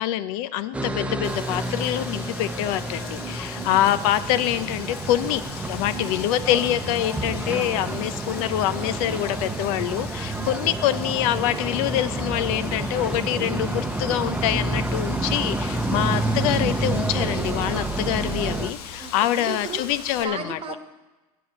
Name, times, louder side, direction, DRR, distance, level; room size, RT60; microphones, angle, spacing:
voice 1, 0.0-5.4 5.7-20.6, left 12 dB, 70° left, 13 dB, 0.6 m, -25 dB
sound 1, 0.7-18.7, right 2 dB, 5° right, 0.7 m, -29 dB
Wind, 1.2-20.2, left 7 dB, 85° left, 1.3 m, -41 dB
voice 2, 3.2-3.9 5.9-6.1 7.9-8.2 10.3-10.5 15.9-16.1 19.0-19.8 20.2-20.8, right 5 dB, 30° right, 7 dB, 1.3 m, -36 dB
8.3 x 7.6 x 8.4 m, 1.1 s
supercardioid pair, 110°, 19 cm